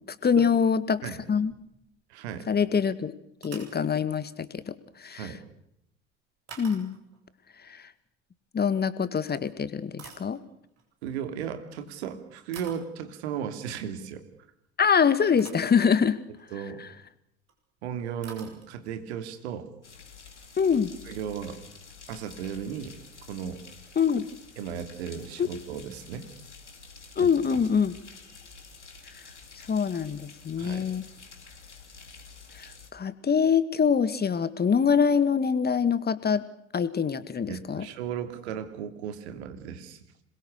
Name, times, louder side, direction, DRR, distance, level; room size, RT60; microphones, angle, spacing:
voice 1, 0.2-1.0 1.3-1.5 2.5-3.1 3.4-5.3 6.6-7.0 7.7-7.9 8.5-10.4 14.8-16.2 16.8-16.9 20.6-20.9 24.0-24.3 25.4-25.5 27.2-27.9 29.7-31.1 32.6-36.4 36.7-37.9, left 6 dB, 30° left, 15 dB, 2.0 m, -24 dB
sound 1, 0.9-2.0 2.3-2.5 3.3-3.8 6.5-7.2 8.9-9.0 9.6-10.8 11.8-12.0 12.5-12.9 14.8-14.9 15.4-15.8 16.3-16.5 17.5-17.6 17.8-17.9 18.2-19.0, right 6 dB, 50° right, 8.0 m, -48 dB
voice 2, 2.1-2.5 5.1-5.4 11.0-14.3 16.5-16.8 17.8-19.7 21.1-21.6 22.1-23.0 23.3-23.6 24.6-26.3 27.2-27.6 30.6-30.9 37.5-40.0, right 8 dB, 70° right, 9 dB, 2.9 m, -36 dB
sound 2, 19.8-32.9, left 4 dB, 90° left, 2.5 m, -49 dB
27.0 x 22.0 x 6.6 m, 0.76 s
figure-of-eight pair, 65°, 34 cm